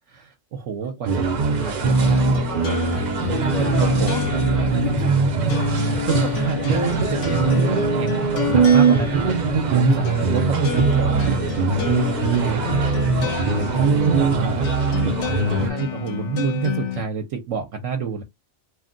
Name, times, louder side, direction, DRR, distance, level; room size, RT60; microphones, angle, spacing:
voice 1, 0.1-2.5 3.3-4.2 5.0-11.6 12.3-13.1 13.7-14.7 15.6-18.2, right 6 dB, 75° right, 0.9 m, -27 dB
sound 1, 1.1-15.7, right 4 dB, 55° right, 0.5 m, -21 dB
sound 2, 1.8-17.0, left 7 dB, 70° left, 1.0 m, -29 dB
voice 2, 2.9-4.3 4.7-5.1 11.8-12.8 13.6-14.6 15.0-15.5, left 2 dB, 25° left, 0.6 m, -34 dB
2.4 x 2.1 x 3.7 m
omnidirectional pair, 1.3 m